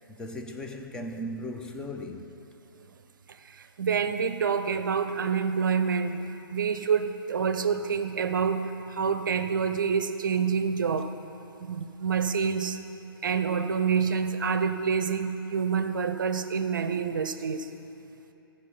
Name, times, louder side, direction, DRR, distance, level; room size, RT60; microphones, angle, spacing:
voice 1, 0.1-2.4, left 1 dB, 5° left, 0.5 m, -37 dB
voice 2, 3.4-11.1 11.6-12.8 13.2-17.7, right 6 dB, 55° right, 0.6 m, -27 dB
15.0 x 5.0 x 5.5 m
figure-of-eight pair, 125°, 13 cm